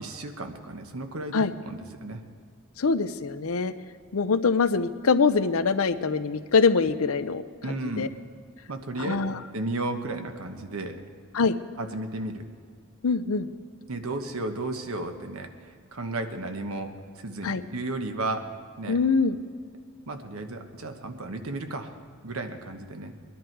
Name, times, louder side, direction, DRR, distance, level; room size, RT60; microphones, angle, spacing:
voice 1, 0.0-2.2 7.6-8.1 8.7-9.2 9.5-11.0 11.8-12.5 13.9-16.9 17.2-18.5 18.8-19.0 20.1-21.9 22.2-23.1, right 2 dB, 90° right, 6 dB, 1.1 m, -33 dB
voice 2, 2.8-3.7 4.1-8.1 9.0-9.4 11.3-11.5 13.0-13.5 17.4-17.6 18.9-19.4, left 4 dB, 90° left, 12 dB, 0.6 m, -24 dB
22.0 x 10.5 x 4.6 m, 2.1 s
head